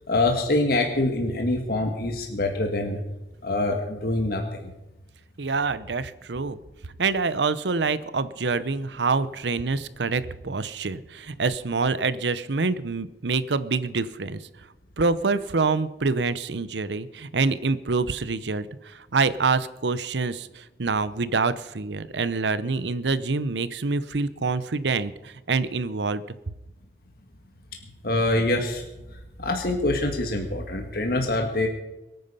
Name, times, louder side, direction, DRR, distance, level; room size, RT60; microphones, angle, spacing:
voice 1, 0.1-3.0 3.4-4.7 28.0-28.8 29.4-31.7, left 2 dB, 55° left, 3 dB, 1.7 m, -25 dB
voice 2, 5.4-6.6 7.0-14.4 15.0-26.2, right 4 dB, 80° right, 15 dB, 0.8 m, -26 dB
22.5 x 9.5 x 5.5 m, 1.0 s
head